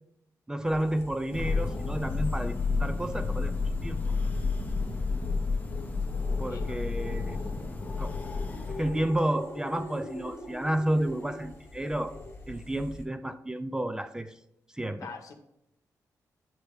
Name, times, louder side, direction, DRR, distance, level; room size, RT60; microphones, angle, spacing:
voice 1, 0.5-3.5 3.8-4.0 6.4-7.4 8.0-8.2 8.7-12.1 12.5-14.3 14.7-15.1, right 1 dB, 10° right, 11 dB, 0.3 m, -31 dB
sound 1, 0.6-13.0, left 2 dB, 40° left, 1.3 m, -44 dB
Thunder, 1.3-9.2, left 4 dB, 25° left, 0.9 m, -31 dB
voice 2, 6.5-6.9 7.3-7.7 15.0-15.3, left 5 dB, 65° left, 5 dB, 1.0 m, -45 dB
8.8 x 3.3 x 4.8 m, 0.82 s
cardioid pair, 110°, 6 cm